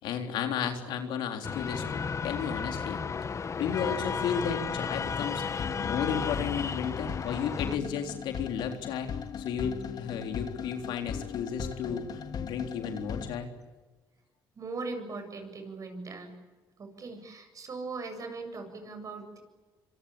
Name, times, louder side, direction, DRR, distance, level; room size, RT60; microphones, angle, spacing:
voice 1, 0.0-3.0 3.6-5.4 5.8-9.1 9.4-13.5, left 7 dB, 85° left, 5 dB, 3.8 m, -33 dB
sound 1, 1.4-7.8, left 6 dB, 40° left, 1.1 m, -33 dB
sound 2, 5.1-13.4, left 7 dB, 55° left, 2.4 m, -38 dB
voice 2, 14.6-16.4 16.8-19.4, right 3 dB, 45° right, 6 dB, 7.9 m, -39 dB
25.5 x 25.0 x 8.7 m, 1.3 s
cardioid pair, 80°, 8 cm